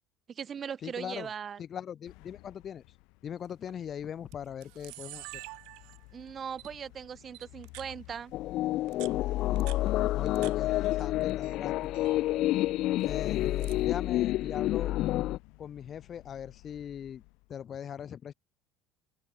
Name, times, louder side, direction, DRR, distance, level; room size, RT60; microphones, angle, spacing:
voice 1, 0.3-1.6 6.1-8.3, right 7 dB, 30° right, 1.8 m, -39 dB
voice 2, 0.8-1.3 1.6-2.8 3.2-5.3 10.1-12.1 13.0-14.9 15.6-17.2 17.5-18.3, left 9 dB, 35° left, 2.1 m, -40 dB
sound 1, 2.1-17.6, left 27 dB, 70° left, 7.6 m, -56 dB
Camera, 3.4-3.7 4.3-4.4 4.6-6.2 6.6-6.7 7.3-7.9 8.7-10.5 10.8-11.6 11.8-12.2 13.0-13.9, right 30 dB, 75° right, 3.9 m, -48 dB
sound 2, 8.3-15.4, left 16 dB, 55° left, 1.1 m, -29 dB
cardioid pair, 150°, 0 cm